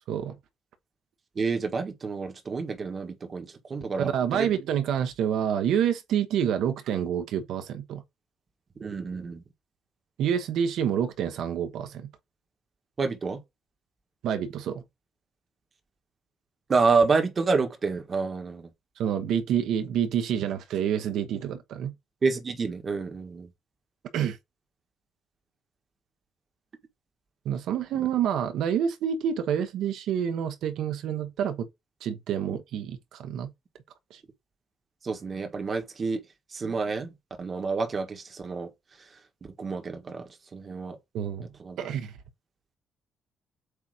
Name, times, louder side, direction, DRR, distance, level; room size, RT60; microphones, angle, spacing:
voice 1, 1.3-4.5 8.8-9.4 13.0-13.4 16.7-18.7 22.2-23.5 28.0-28.1 32.5-32.6 35.0-36.2 36.5-37.1 37.4-38.7 39.4-41.0 41.6-41.8, right 4 dB, 30° right, 1.3 m, -28 dB
voice 2, 4.0-8.0 10.2-12.1 14.2-14.8 19.0-21.9 24.1-24.4 27.4-31.7 32.0-33.5 34.1-34.2 41.1-41.5 41.8-42.1, right 9 dB, 80° right, 1.1 m, -28 dB
8.1 x 2.8 x 4.9 m
cardioid pair, 160°, 0 cm